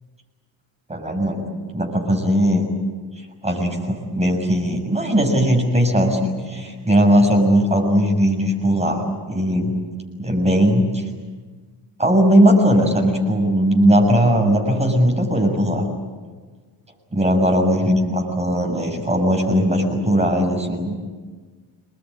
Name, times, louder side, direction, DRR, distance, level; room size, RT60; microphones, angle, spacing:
voice 1, 0.9-1.5 1.7-2.7 3.4-9.7 10.2-11.1 12.0-15.9 17.1-21.0, equal, 15° right, 1 dB, 6.9 m, -18 dB
27.5 x 21.5 x 9.9 m, 1.4 s
cardioid pair, 135°, 47 cm